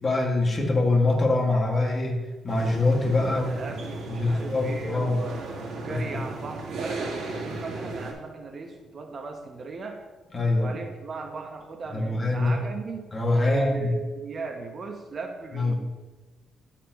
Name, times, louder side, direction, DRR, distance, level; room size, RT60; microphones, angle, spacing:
voice 1, 0.0-3.5 4.1-5.2 5.8-6.2 10.3-10.7 11.9-12.6 13.1-13.9 15.5-15.8, left 2 dB, 30° left, -1 dB, 1.9 m, -24 dB
sound 1, 2.5-8.1, right 2 dB, 75° right, 1.9 m, -36 dB
voice 2, 3.3-10.0 10.6-15.7, right 4 dB, 45° right, 5 dB, 0.8 m, -37 dB
12.5 x 4.5 x 3.0 m, 1.2 s
cardioid pair, 90°, 0 cm